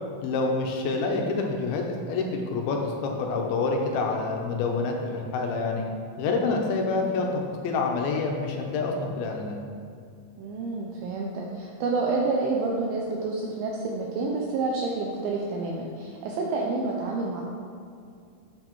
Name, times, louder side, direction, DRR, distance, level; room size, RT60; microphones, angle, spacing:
voice 1, 0.2-5.9 6.2-9.6, left 3 dB, 75° left, 1 dB, 2.3 m, -27 dB
voice 2, 10.4-17.4, right 3 dB, 90° right, -1 dB, 2.0 m, -29 dB
7.6 x 6.7 x 3.0 m, 2.3 s
omnidirectional pair, 4.8 m